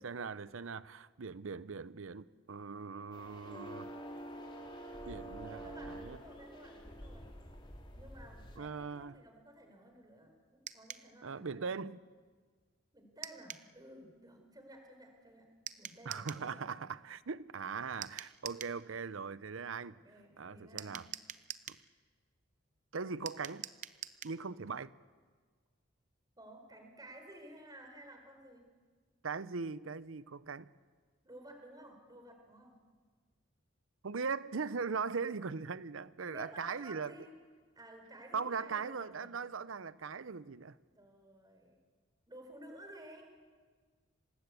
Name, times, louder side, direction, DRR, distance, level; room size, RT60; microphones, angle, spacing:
voice 1, 0.0-3.9 5.0-6.2 8.6-9.1 11.2-12.0 16.1-20.0 20.4-21.1 21.7-21.8 22.9-23.6 24.2-24.9 29.2-30.7 34.0-37.1 38.3-40.7, right 5 dB, 80° right, 0.7 m, -40 dB
sound 1, 3.1-8.6, right 1 dB, 25° left, 3.2 m, -47 dB
voice 2, 5.5-7.3 7.9-11.7 12.9-15.5 15.8-16.8 19.9-21.0 26.4-28.6 31.2-32.8 36.3-37.3 37.7-39.3 40.9-41.8 42.3-43.3, right 1 dB, 20° right, 4.4 m, -54 dB
sound 2, 10.7-11.1 13.2-13.7 15.7-16.5 18.0-18.8 20.8-21.8 23.3-24.4, right 9 dB, 40° right, 0.7 m, -45 dB
26.5 x 19.5 x 8.3 m
head